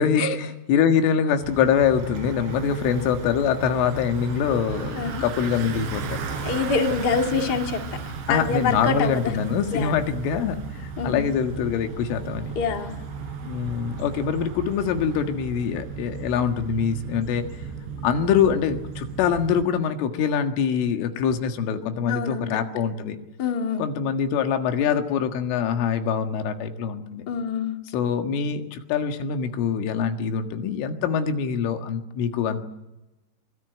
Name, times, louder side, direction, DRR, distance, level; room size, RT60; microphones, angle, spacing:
voice 1, 0.0-6.2 8.3-12.5 13.4-17.5 18.0-23.2 23.8-27.3 27.9-32.6, left 7 dB, 90° left, 7 dB, 4.3 m, -24 dB
Bicycle, 1.4-19.6, right 5 dB, 65° right, 5.7 m, -35 dB
voice 2, 4.9-5.2 6.4-9.3 9.7-10.0 11.0-11.2 12.5-13.0 22.1-22.7 23.4-23.9 27.3-27.8, left 5 dB, 40° left, 4 dB, 1.5 m, -26 dB
24.5 x 21.0 x 9.0 m, 0.97 s
omnidirectional pair, 5.5 m